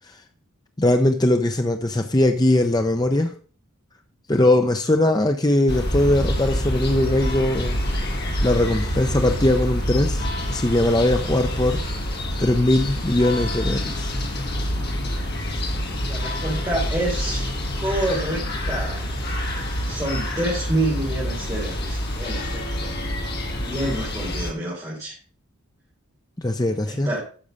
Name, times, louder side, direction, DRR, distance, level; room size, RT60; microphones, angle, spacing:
voice 1, 0.8-3.3 4.3-7.8 8.4-11.8 12.4-14.1 26.4-27.1, left 1 dB, 15° left, 0.7 m, -20 dB
sound 1, 5.7-24.5, equal, 45° left, 2.2 m, -27 dB
voice 2, 16.1-17.5 17.8-19.0 19.8-23.0 23.5-25.1 26.9-27.2, right 1 dB, 15° right, 3.9 m, -28 dB
10.0 x 6.8 x 5.4 m
head